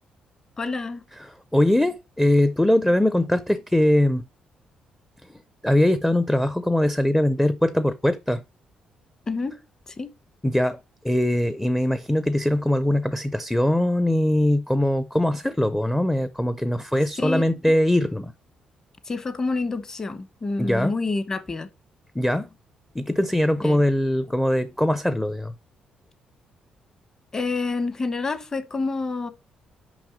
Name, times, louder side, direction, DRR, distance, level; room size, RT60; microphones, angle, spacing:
voice 1, 0.6-1.0 9.3-9.6 9.9-10.1 17.2-17.5 19.0-21.7 23.6-23.8 27.3-29.3, left 3 dB, 25° left, 1.0 m, -28 dB
voice 2, 1.2-4.2 5.6-8.4 10.4-10.8 11.0-18.3 20.6-20.9 22.1-22.5 22.9-25.5, left 1 dB, 5° left, 0.5 m, -21 dB
6.1 x 5.5 x 4.9 m
cardioid pair, 130°, 2 cm